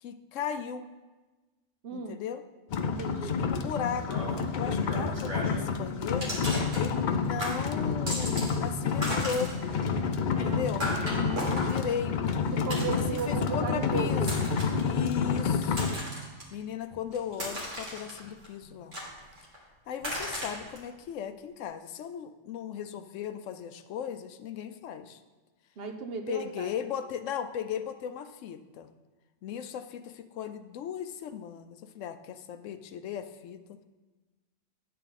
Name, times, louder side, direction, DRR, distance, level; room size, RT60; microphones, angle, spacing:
voice 1, 0.0-0.9 1.9-2.4 3.2-4.3 4.6-6.4 6.7-9.6 10.2-10.9 11.6-12.4 12.9-14.5 14.8-16.0 16.5-19.0 19.9-25.2 26.3-28.9 29.4-33.8, left 8 dB, 80° left, 10 dB, 0.9 m, -37 dB
voice 2, 1.8-2.2 2.9-3.3 10.3-11.5 12.5-14.3 25.8-26.7, right 5 dB, 55° right, 5 dB, 0.9 m, -36 dB
sound 1, 2.7-15.9, left 5 dB, 55° left, 0.5 m, -29 dB
sound 2, 4.0-5.7 6.2-7.1 7.4-8.6 8.8-13.4 14.2-14.8 15.4-16.4 16.9-18.5 18.9-19.6 20.0-20.8, equal, 85° right, 2.5 m, -36 dB
10.0 x 6.7 x 4.1 m, 1.2 s
omnidirectional pair, 1.3 m